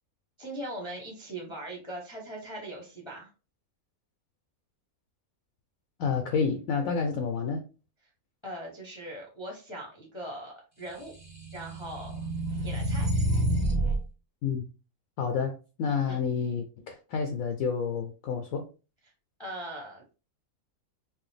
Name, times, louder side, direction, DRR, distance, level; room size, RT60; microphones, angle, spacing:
voice 1, 0.4-3.3 8.4-11.1 11.5-12.2 12.6-13.1 16.1-16.2 19.4-20.0, right 1 dB, 25° left, 0.7 m, -40 dB
voice 2, 6.0-7.6 14.4-14.7 15.2-18.7, left 6 dB, 70° left, 0.9 m, -29 dB
sound 1, 11.1-14.0, right 1 dB, 15° right, 0.8 m, -28 dB
4.6 x 2.0 x 3.2 m
omnidirectional pair, 1.6 m